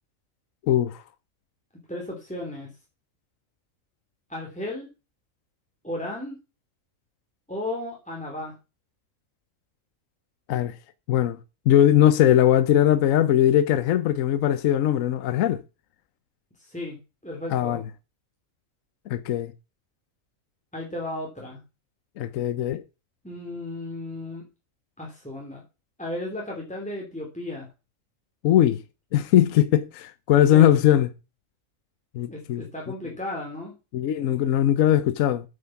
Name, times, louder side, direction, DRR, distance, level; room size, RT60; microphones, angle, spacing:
voice 1, 0.6-1.0 10.5-10.7 11.1-11.4 11.7-15.6 17.5-17.8 19.1-19.5 22.2-22.8 28.4-28.8 29.1-31.1 32.1-32.6 33.9-35.5, left 11 dB, 75° left, 1.1 m, -20 dB
voice 2, 1.9-2.7 4.3-4.9 5.8-6.4 7.5-8.5 16.6-17.8 20.7-21.6 23.2-24.4 25.0-25.6 26.0-27.7 30.3-30.7 32.3-33.7, left 1 dB, 5° left, 2.8 m, -34 dB
8.7 x 7.7 x 5.8 m
omnidirectional pair, 1.4 m